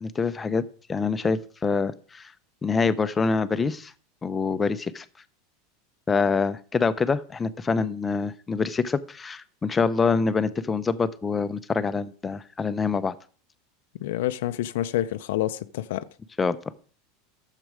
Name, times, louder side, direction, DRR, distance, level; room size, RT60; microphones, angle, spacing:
voice 1, 0.0-2.3 2.6-3.9 4.2-5.0 6.1-13.1 16.4-16.6, left 4 dB, 15° left, 0.5 m, -25 dB
voice 2, 14.0-16.1, left 14 dB, 75° left, 0.4 m, -28 dB
12.5 x 7.4 x 4.9 m
supercardioid pair, 165°, 0 cm